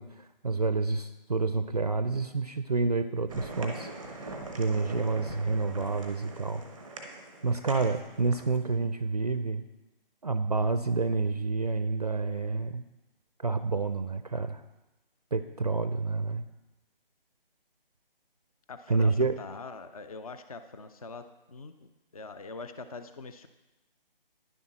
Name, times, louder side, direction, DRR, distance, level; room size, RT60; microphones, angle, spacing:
voice 1, 0.0-6.6 7.4-9.6 10.2-12.8 13.4-14.6 15.3-16.5 18.9-19.3, right 3 dB, 45° right, 11 dB, 0.4 m, -29 dB
sound 1, 3.3-8.6, right 2 dB, ahead, 0.6 m, -42 dB
voice 2, 18.7-23.5, left 3 dB, 40° left, 10 dB, 0.5 m, -43 dB
10.5 x 7.2 x 5.8 m, 1.1 s
figure-of-eight pair, 155°, 29 cm